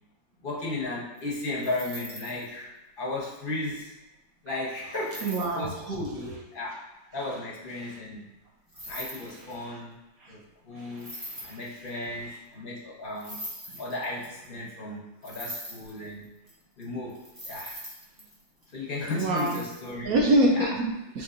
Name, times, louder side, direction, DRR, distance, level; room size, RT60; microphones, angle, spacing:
voice 1, 0.4-2.7 3.0-3.9 4.4-6.8 7.1-8.2 8.8-10.0 10.3-11.1 11.5-13.4 13.8-16.3 16.8-17.8 18.7-20.1 20.5-20.7, left 2 dB, 45° left, -4 dB, 0.7 m, -35 dB
sound 1, 1.2-2.4 5.0-5.7 8.7-9.6 11.0-12.0 13.1-14.5 15.2-16.5 16.8-16.9 17.1-18.7 19.2-19.9, equal, 15° right, 0.8 m, -41 dB
voice 2, 5.2-6.0 10.2-10.3 10.8-11.6 19.1-19.6 20.0-21.2, right 1 dB, 70° right, 0 dB, 0.9 m, -26 dB
6.1 x 3.0 x 2.5 m, 1.0 s
omnidirectional pair, 2.0 m